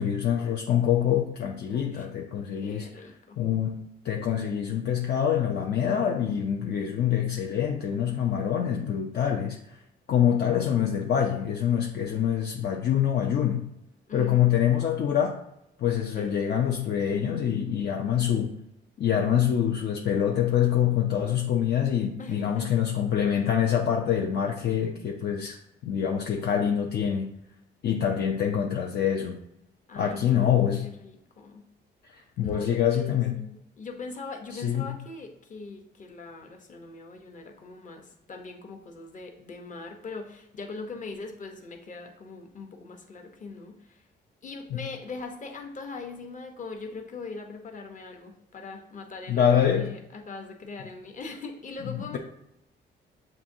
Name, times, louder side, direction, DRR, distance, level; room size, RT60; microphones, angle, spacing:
voice 1, 0.0-3.1 3.4-9.6 10.1-13.7 14.1-15.4 15.8-18.6 19.0-25.6 25.8-27.3 27.8-29.4 30.0-30.9 32.1-33.4 34.5-35.0 49.3-49.9 51.9-52.2, left 9 dB, 55° left, 1 dB, 0.5 m, -25 dB
voice 2, 1.7-2.1 2.6-3.4 14.1-14.6 16.2-16.3 22.2-22.7 29.9-31.6 32.4-44.0 44.4-52.2, left 4 dB, 40° left, 3 dB, 0.9 m, -41 dB
7.1 x 2.6 x 2.7 m, 0.81 s
cardioid pair, 90°, 20 cm